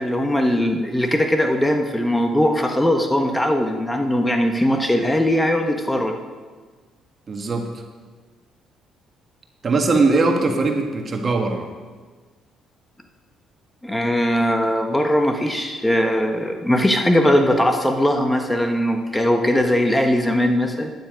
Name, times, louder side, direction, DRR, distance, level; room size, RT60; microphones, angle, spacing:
voice 1, 0.0-6.1 13.8-20.9, equal, 10° left, 4 dB, 1.4 m, -20 dB
voice 2, 7.3-7.7 9.6-11.7, right 3 dB, 40° right, 4 dB, 1.7 m, -20 dB
12.0 x 9.7 x 5.2 m, 1.4 s
hypercardioid pair, 50°, 0 cm